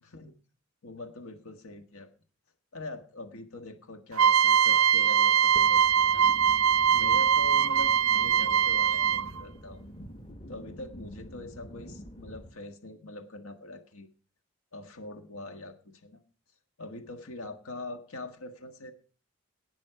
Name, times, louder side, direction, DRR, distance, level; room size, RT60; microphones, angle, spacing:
voice 1, 0.0-0.3 0.8-2.1 2.7-6.3 6.9-9.8 10.5-14.1 14.7-16.2 16.8-18.9, left 2 dB, 75° left, 6 dB, 1.6 m, -43 dB
sound 1, 4.2-9.4, right 8 dB, 65° right, 0.4 m, -22 dB
sound 2, 5.6-12.5, equal, 25° left, 1.3 m, -46 dB
18.5 x 6.3 x 4.8 m, 0.37 s
head